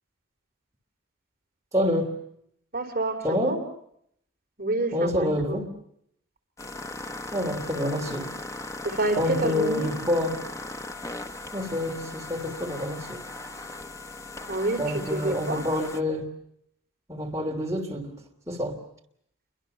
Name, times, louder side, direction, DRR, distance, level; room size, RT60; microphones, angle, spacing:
voice 1, 1.7-2.1 3.2-3.6 4.9-5.7 7.3-8.3 9.2-10.4 11.5-13.2 14.8-16.3 17.1-18.2 18.5-18.8, left 1 dB, 15° right, 3.1 m, -27 dB
voice 2, 2.7-3.6 4.6-5.6 8.8-9.9 14.5-15.6, right 2 dB, 45° right, 3.5 m, -28 dB
sound 1, 6.6-16.0, left 2 dB, 15° left, 1.0 m, -38 dB
29.5 x 24.5 x 6.9 m
head